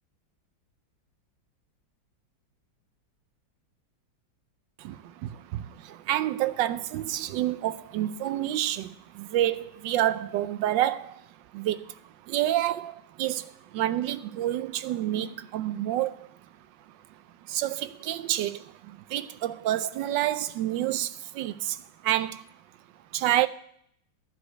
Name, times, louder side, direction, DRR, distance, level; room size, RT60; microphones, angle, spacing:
voice 1, 5.2-5.6 6.1-8.9 9.2-11.1 11.5-11.8 12.3-13.4 13.7-16.1 17.5-18.6 19.1-21.1 21.4-21.7 22.0-22.4 23.1-23.5, right 13 dB, 75° right, 1.2 m, -28 dB
11.5 x 5.0 x 8.0 m
omnidirectional pair, 2.1 m